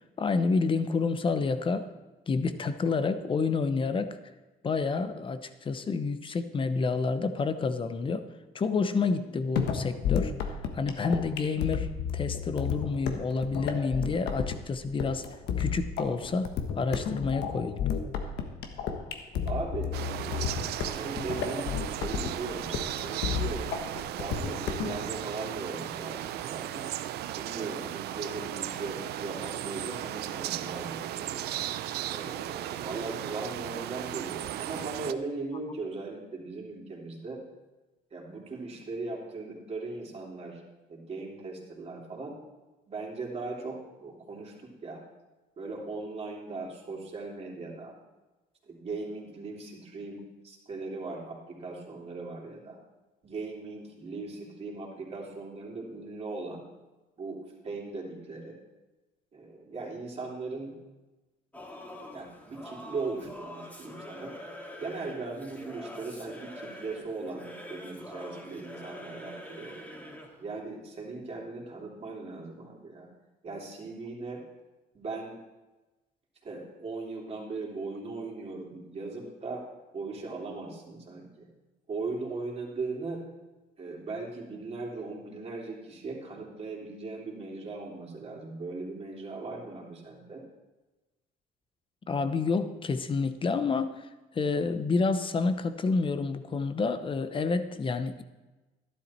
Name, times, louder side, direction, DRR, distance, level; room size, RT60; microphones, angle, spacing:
voice 1, 0.2-1.9 2.3-4.2 4.6-8.2 8.5-10.5 10.7-15.2 15.6-16.5 16.7-17.9 92.1-94.1 94.3-98.2, left 4 dB, 30° left, 11 dB, 0.8 m, -29 dB
sound 1, 9.6-25.0, left 7 dB, 80° left, 1.4 m, -32 dB
voice 2, 19.5-19.9 20.2-23.7 24.1-26.9 27.3-31.5 32.1-37.4 38.1-40.6 40.9-42.4 42.9-45.0 45.6-47.9 48.6-52.8 53.2-56.6 57.2-58.6 59.3-60.7 62.1-64.3 64.8-69.9 70.4-73.1 73.4-74.4 74.9-75.4 76.4-79.6 79.9-81.5 81.9-83.2 83.8-90.4, right 3 dB, 35° right, -2 dB, 3.2 m, -38 dB
sound 2, 19.9-35.1, right 12 dB, 75° right, 0.6 m, -36 dB
Singing / Musical instrument, 61.5-70.4, equal, 10° left, 2.0 m, -44 dB
12.5 x 11.5 x 4.4 m, 1.1 s
cardioid pair, 110°, 17 cm